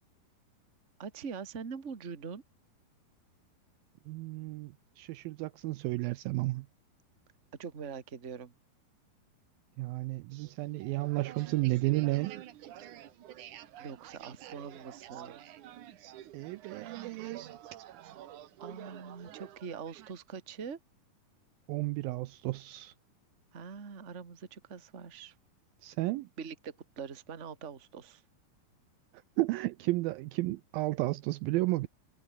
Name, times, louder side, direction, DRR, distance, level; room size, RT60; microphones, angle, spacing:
voice 1, 1.0-2.4 7.6-8.5 13.8-15.5 18.1-18.2 18.6-20.8 23.5-25.3 26.4-28.2, right 6 dB, 30° right, 1.5 m, -43 dB
voice 2, 4.1-6.7 9.8-12.4 16.3-17.4 21.7-22.9 25.8-26.3 29.4-31.9, right 19 dB, 80° right, 2.2 m, -32 dB
sound 1, 10.3-20.2, right 12 dB, 60° right, 2.4 m, -49 dB
omnidirectional pair, 4.5 m